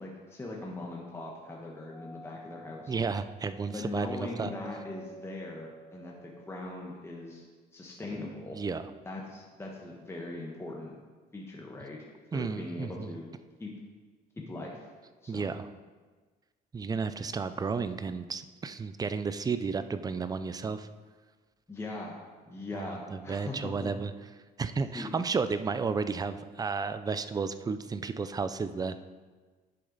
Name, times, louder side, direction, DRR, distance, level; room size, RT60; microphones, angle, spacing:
voice 1, 0.0-3.0 3.7-7.4 7.7-8.6 9.0-11.0 11.3-12.1 12.3-13.3 13.6-13.7 14.4-14.9 15.2-15.5 21.7-22.2 22.5-23.9 24.9-25.1, left 2 dB, 15° left, -2 dB, 1.2 m, -40 dB
Doorbell, 1.9-6.7, right 1 dB, ahead, 1.4 m, -51 dB
voice 2, 2.9-4.5 8.5-8.8 12.3-13.1 15.3-15.7 16.7-20.9 22.7-24.1 24.6-29.0, right 5 dB, 20° right, 12 dB, 0.5 m, -32 dB
10.0 x 6.3 x 4.0 m, 1.4 s
cardioid pair, 110°, 17 cm